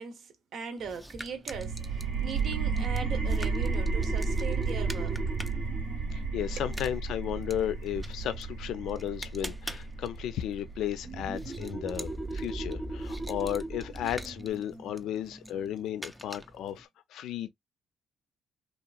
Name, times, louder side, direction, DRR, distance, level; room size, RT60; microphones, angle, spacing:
voice 1, 0.0-5.2 6.6-6.7, right 6 dB, 60° right, 0.8 m, -40 dB
sound 1, 0.8-16.9, equal, 5° right, 0.4 m, -47 dB
sound 2, 1.5-12.9, right 4 dB, 85° right, 1.2 m, -33 dB
sound 3, 2.7-8.0 11.0-16.3, right 2 dB, 30° right, 0.7 m, -39 dB
voice 2, 6.1-17.5, left 11 dB, 75° left, 0.4 m, -34 dB
2.9 x 2.5 x 2.3 m
cardioid pair, 105°, 0 cm